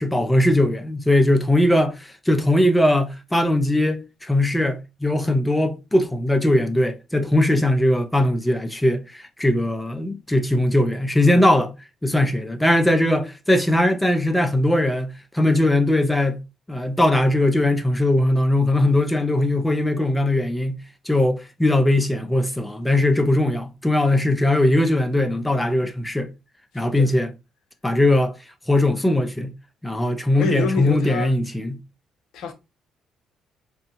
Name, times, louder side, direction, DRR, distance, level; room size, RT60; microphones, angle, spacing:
voice 1, 0.0-11.7 12.0-16.4 16.7-20.8 21.1-26.3 26.7-27.3 27.8-28.3 28.7-29.5 29.8-31.8, left 1 dB, 10° left, 0.6 m, -20 dB
voice 2, 26.7-27.1 30.3-31.3 32.3-32.5, left 5 dB, 65° left, 0.5 m, -27 dB
4.4 x 2.6 x 2.6 m
figure-of-eight pair, 45°, 0 cm